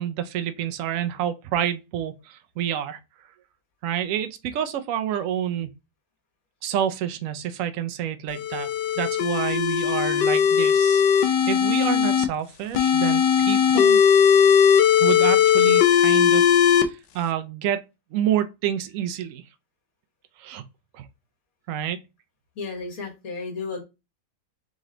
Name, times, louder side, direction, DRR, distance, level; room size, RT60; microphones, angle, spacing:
voice 1, 0.0-3.0 3.8-5.7 6.6-8.7 9.0-14.0 15.0-16.4 16.7-17.8 18.1-19.4 20.4-20.6 20.9-21.1 21.7-22.0, right 10 dB, 70° right, 0.8 m, -28 dB
sound 1, 8.3-12.2 12.7-16.8, left 8 dB, 85° left, 1.2 m, -18 dB
voice 2, 22.5-23.8, left 4 dB, 55° left, 1.8 m, -33 dB
3.9 x 3.1 x 3.7 m
omnidirectional pair, 1.8 m